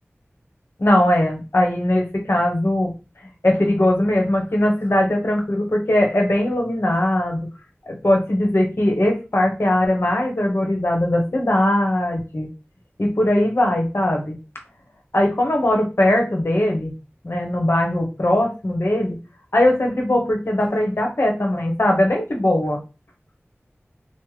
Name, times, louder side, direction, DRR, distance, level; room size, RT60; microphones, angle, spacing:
voice 1, 0.8-2.9 3.4-7.4 7.9-12.5 13.0-14.4 15.1-16.9 17.2-19.2 19.5-22.8, left 1 dB, 60° left, 0 dB, 1.0 m, -20 dB
3.3 x 2.0 x 3.2 m, 0.30 s
wide cardioid pair, 50°, 5 cm